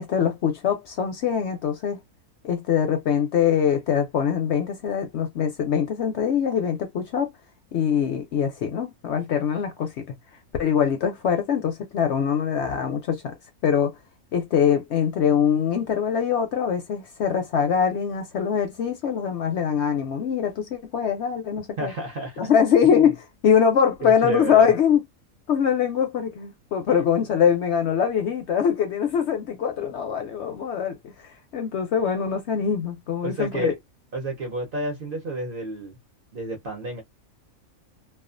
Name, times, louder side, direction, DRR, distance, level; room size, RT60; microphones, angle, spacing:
voice 1, 0.0-2.0 2.4-7.3 7.7-10.1 10.6-13.3 13.6-13.9 14.3-21.9 22.4-25.0 25.5-33.7, left 7 dB, 65° left, 0.7 m, -23 dB
voice 2, 21.8-22.5 22.8-22.9 24.0-24.7 33.2-33.7 34.1-36.0 36.3-37.0, right 2 dB, 50° right, 0.7 m, -30 dB
2.4 x 2.3 x 2.4 m
omnidirectional pair, 1.5 m